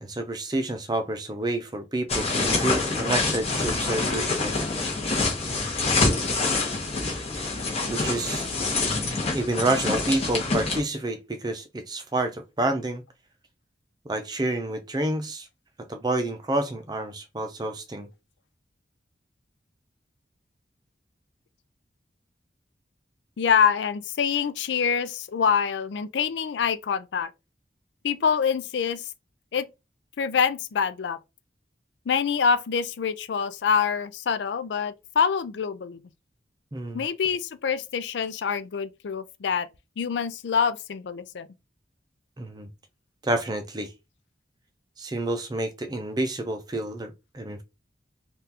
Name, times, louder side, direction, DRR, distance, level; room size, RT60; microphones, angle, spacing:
voice 1, 0.0-4.7 7.9-8.5 9.3-13.0 14.0-15.5 15.9-18.1 36.7-37.0 42.4-42.7 43.2-43.9 45.0-47.6, right 2 dB, 20° right, 0.5 m, -29 dB
sound 1, 2.1-10.8, left 3 dB, 35° left, 1.0 m, -26 dB
voice 2, 23.4-27.3 28.0-29.0 29.5-29.7 30.2-31.2 32.1-36.0 36.9-39.7 40.0-41.5, left 6 dB, 80° left, 0.4 m, -25 dB
3.7 x 2.4 x 2.8 m
head